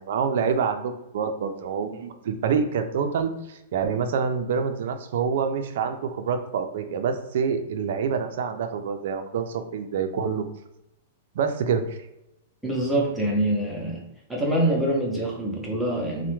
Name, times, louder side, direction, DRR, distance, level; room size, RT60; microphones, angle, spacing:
voice 1, 0.0-10.5 11.3-12.0, right 6 dB, 55° right, 7 dB, 0.4 m, -26 dB
voice 2, 12.6-14.0 14.3-16.3, right 1 dB, ahead, -4 dB, 0.5 m, -25 dB
3.3 x 2.1 x 3.0 m, 0.87 s
supercardioid pair, 170°, 0 cm